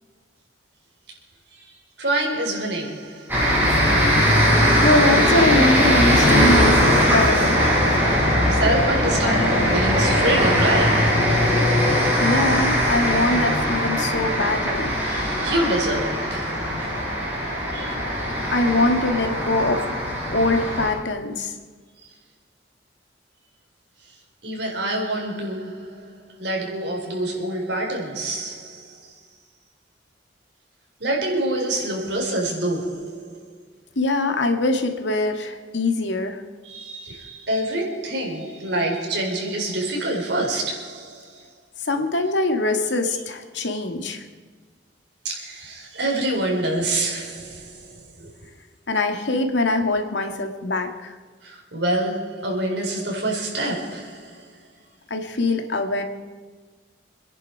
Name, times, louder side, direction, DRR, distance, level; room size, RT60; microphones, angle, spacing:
voice 1, 1.5-3.8 8.5-11.9 15.0-17.1 17.7-17.9 24.4-29.2 31.0-33.5 36.6-41.5 45.2-48.3 51.4-54.6, right 1 dB, 70° right, 4.7 m, -27 dB
sound 1, 3.3-20.9, equal, 10° right, 6.7 m, -20 dB
voice 2, 4.8-7.6 11.9-14.9 18.5-19.8 20.3-21.5 34.0-36.4 41.8-44.2 48.9-51.1 55.1-56.0, left 2 dB, 80° left, 2.2 m, -23 dB
27.0 x 10.5 x 4.9 m
head